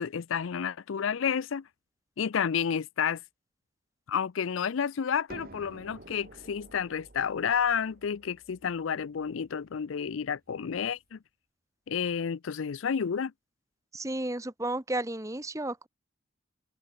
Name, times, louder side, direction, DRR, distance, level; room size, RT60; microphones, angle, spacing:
voice 1, 0.0-1.6 2.2-3.2 4.1-11.2 11.9-13.3, left 7 dB, 80° left, 0.5 m, -30 dB
sound 1, 5.3-10.9, right 2 dB, 45° right, 1.7 m, -52 dB
voice 2, 13.9-15.9, right 1 dB, 15° right, 1.3 m, -33 dB
open air
head